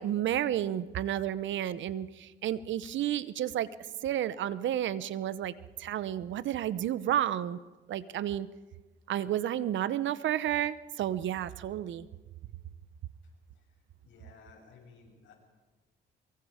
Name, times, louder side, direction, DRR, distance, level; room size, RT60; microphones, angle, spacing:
voice 1, 0.0-3.7 4.0-5.5 5.8-7.6 7.9-8.5 9.1-12.1, right 11 dB, 70° right, 16 dB, 0.8 m, -31 dB
voice 2, 14.0-15.3, left 4 dB, 75° left, 1 dB, 6.8 m, -56 dB
24.0 x 23.0 x 5.0 m, 1.2 s
cardioid pair, 90°, 20 cm